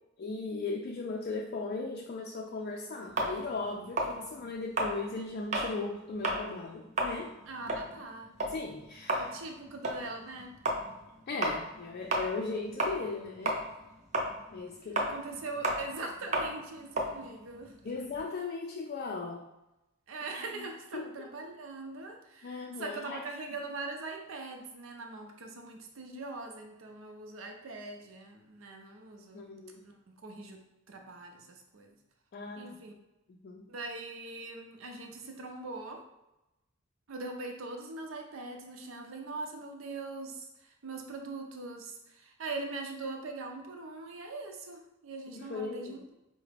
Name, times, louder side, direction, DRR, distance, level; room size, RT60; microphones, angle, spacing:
voice 1, 0.2-7.3 8.5-9.3 11.3-13.6 14.5-15.1 17.8-19.5 20.5-20.7 20.9-21.1 22.4-23.2 29.3-29.8 32.3-32.8 33.4-33.7 45.3-46.0, left 3 dB, 45° left, 0 dB, 0.4 m, -37 dB
sound 1, 3.2-5.8 6.1-6.5 6.8-13.2 13.4-18.2, right 1 dB, 35° right, 0.5 m, -33 dB
voice 2, 7.5-8.4 9.2-10.6 15.0-17.7 20.1-29.4 29.8-30.6 30.9-32.0 32.6-33.0 33.7-36.0 37.1-46.1, right 3 dB, 80° right, 3 dB, 0.6 m, -42 dB
4.7 x 2.1 x 3.3 m, 0.94 s
head